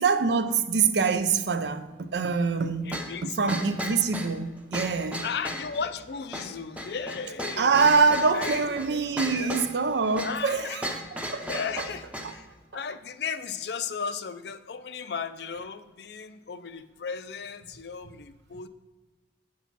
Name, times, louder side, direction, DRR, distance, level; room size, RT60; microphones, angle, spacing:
voice 1, 0.0-5.2 7.6-11.0 11.3-11.5, right 5 dB, 70° right, 0.5 m, -25 dB
voice 2, 2.8-3.4 5.2-7.7 8.3-9.6 10.2-10.8 11.4-12.5 12.7-18.7, left 6 dB, 65° left, 0.5 m, -35 dB
sound 1, 2.9-12.4, equal, 10° right, 0.7 m, -36 dB
8.1 x 6.2 x 4.1 m
head